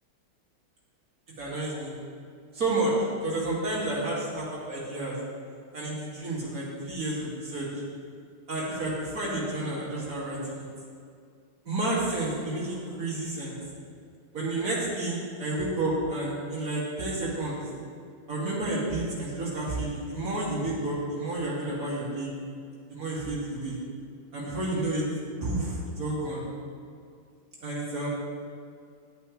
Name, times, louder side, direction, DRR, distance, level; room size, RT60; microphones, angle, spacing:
voice 1, 1.4-1.9 2.5-5.2 5.7-7.7 8.5-10.7 11.6-13.6 14.3-17.6 18.3-22.3 22.9-23.8 24.3-25.0 25.4-26.4 27.6-28.1, right 2 dB, 40° right, -7 dB, 2.7 m, -30 dB
11.0 x 8.2 x 3.2 m, 2.3 s
omnidirectional pair, 2.4 m